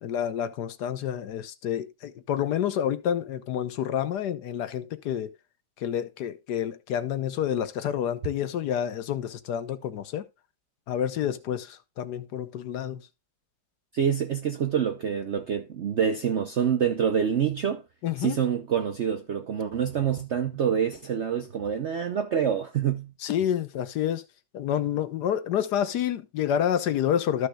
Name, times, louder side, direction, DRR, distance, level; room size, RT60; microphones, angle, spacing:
voice 1, 0.0-5.3 5.8-10.2 10.9-13.0 18.0-18.4 23.2-24.2 24.5-27.5, left 9 dB, 70° left, 1.3 m, -28 dB
voice 2, 13.9-17.8 18.2-23.1, right 8 dB, 65° right, 0.7 m, -26 dB
13.5 x 6.4 x 2.3 m
omnidirectional pair, 1.9 m